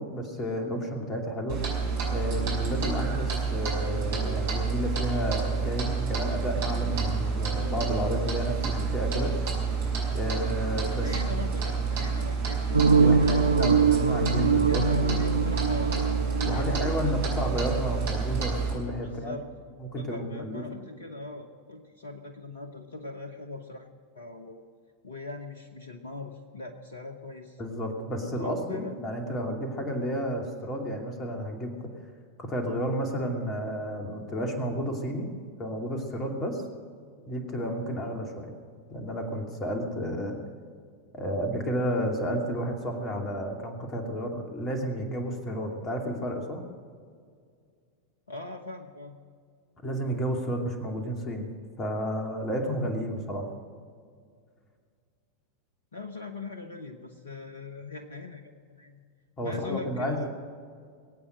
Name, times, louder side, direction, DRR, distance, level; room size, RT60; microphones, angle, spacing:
voice 1, 0.0-1.6 2.1-9.3 10.1-11.1 13.0-15.2 16.4-19.4 19.8-20.6 27.6-31.7 32.4-35.3 35.6-36.6 37.3-38.5 38.9-40.4 41.1-46.6 49.8-51.5 51.8-53.5 59.4-60.3, equal, 25° left, 2 dB, 2.7 m, -31 dB
Clock, 1.5-18.7, right 5 dB, 50° right, 5.3 m, -29 dB
voice 2, 10.8-13.5 14.6-16.2 16.4-17.3 19.0-19.4 20.0-23.9 24.1-24.6 25.0-27.6 28.2-28.9 36.1-36.4 48.3-49.2 55.9-59.0 59.4-60.3, left 3 dB, 70° left, 6 dB, 1.1 m, -40 dB
sound 1, 12.7-17.5, right 5 dB, 80° right, 0.6 m, -23 dB
22.0 x 8.7 x 6.5 m, 2.1 s
figure-of-eight pair, 90°, 0 cm